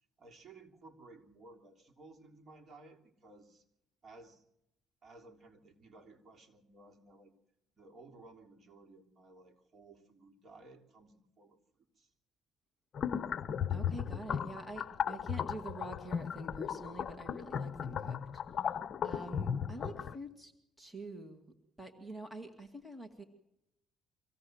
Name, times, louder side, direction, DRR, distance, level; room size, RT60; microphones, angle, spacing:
voice 1, 0.0-3.6 4.0-4.4 5.0-7.3 7.8-12.1 20.0-20.3, right 2 dB, 40° right, 1 dB, 3.3 m, -57 dB
sound 1, 12.9-20.2, left 8 dB, 45° left, 0.8 m, -36 dB
voice 2, 13.7-18.2 18.5-18.6 19.0-20.5 20.8-23.2, right 2 dB, 5° right, 4 dB, 2.1 m, -46 dB
25.0 x 16.5 x 7.9 m, 0.84 s
cardioid pair, 110°, 0 cm